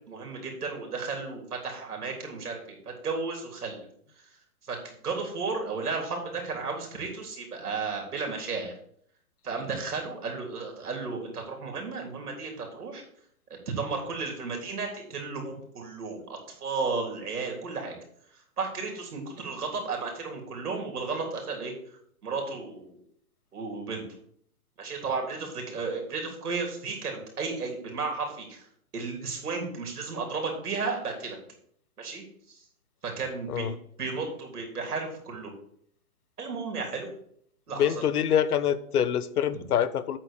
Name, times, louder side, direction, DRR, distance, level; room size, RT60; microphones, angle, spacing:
voice 1, 0.1-3.9 4.7-8.7 9.4-13.0 13.7-17.9 18.6-21.7 22.2-23.0 23.5-24.0 24.8-28.7 28.9-31.4 32.0-32.7 33.0-35.5 36.4-37.1 37.7-38.0 39.5-39.6, right 4 dB, 90° right, 1 dB, 3.6 m, -33 dB
voice 2, 37.7-40.2, left 9 dB, 80° left, 15 dB, 0.9 m, -25 dB
8.9 x 4.4 x 6.6 m, 0.67 s
hypercardioid pair, 160°, 44 cm